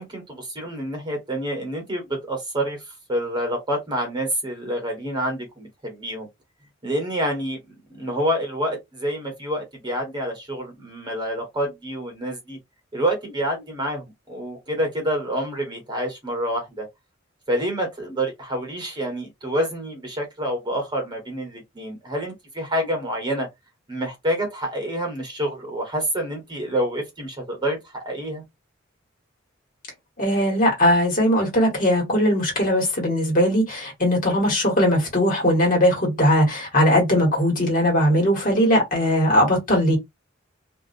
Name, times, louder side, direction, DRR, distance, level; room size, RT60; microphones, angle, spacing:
voice 1, 0.0-2.8 3.1-6.3 6.8-7.6 7.9-12.6 12.9-16.9 17.5-23.5 23.9-28.4, equal, 25° right, 1.2 m, -27 dB
voice 2, 30.2-40.0, equal, 45° left, 1.5 m, -19 dB
2.5 x 2.3 x 2.5 m
head